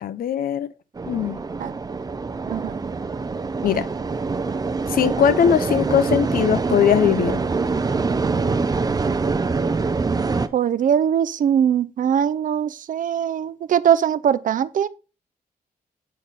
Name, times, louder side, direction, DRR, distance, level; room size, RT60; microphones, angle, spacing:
voice 1, 0.0-0.7 1.1-1.4 3.6-3.9 4.9-7.4, left 9 dB, 75° left, 0.8 m, -20 dB
sound 1, 1.0-10.5, right 4 dB, 25° right, 0.7 m, -24 dB
voice 2, 10.5-14.9, right 9 dB, 60° right, 0.6 m, -21 dB
8.8 x 6.3 x 4.1 m
cardioid pair, 125°, 15 cm